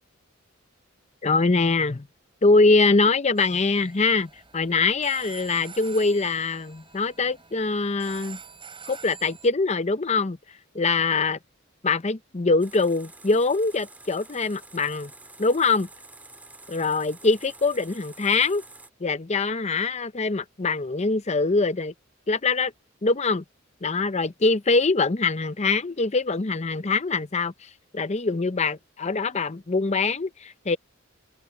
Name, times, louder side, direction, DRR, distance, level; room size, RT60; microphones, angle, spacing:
voice 1, 1.2-2.1 2.4-8.4 8.9-10.4 10.7-11.4 11.8-15.1 15.4-15.9 16.7-18.6 19.0-21.9 22.3-22.7 23.0-23.4 23.8-30.8, left 3 dB, 35° left, 0.7 m, -23 dB
sound 1, 3.4-9.5, right 6 dB, 25° right, 7.0 m, -46 dB
sound 2, 12.6-18.9, right 2 dB, 10° right, 1.8 m, -48 dB
open air
head